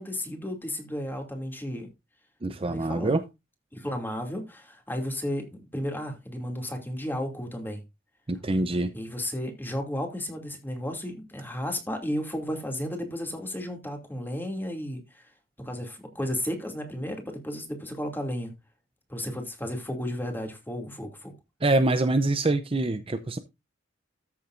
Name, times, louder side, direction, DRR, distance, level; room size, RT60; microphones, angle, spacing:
voice 1, 0.0-1.9 2.7-3.2 3.7-5.5 5.7-7.8 8.9-15.3 15.6-18.5 19.1-21.3, equal, 10° left, 2.6 m, -33 dB
voice 2, 2.4-3.2 8.3-8.9 21.6-23.4, right 2 dB, 30° right, 0.7 m, -25 dB
13.5 x 7.3 x 2.6 m
head